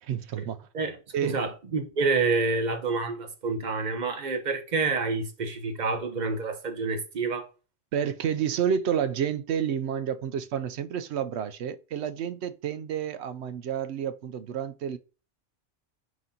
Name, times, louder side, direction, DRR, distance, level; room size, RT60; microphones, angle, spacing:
voice 1, 0.0-0.7 1.1-1.4 7.9-15.0, right 8 dB, 70° right, 0.8 m, -30 dB
voice 2, 1.2-7.5, right 4 dB, 40° right, 0.9 m, -28 dB
9.3 x 3.8 x 2.8 m
omnidirectional pair, 1.2 m